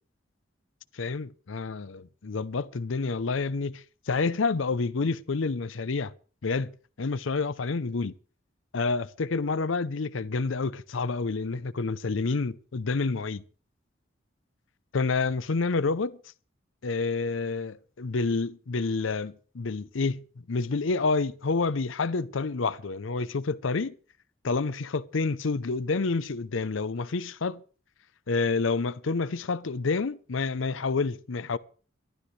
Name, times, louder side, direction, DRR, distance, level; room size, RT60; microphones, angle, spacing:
voice 1, 0.9-6.1 6.4-6.7 7.0-8.1 8.7-13.4 14.9-16.2 16.8-20.2 20.5-23.9 24.4-27.6 28.3-31.6, left 4 dB, 85° left, 0.6 m, -28 dB
23.0 x 12.5 x 3.2 m
head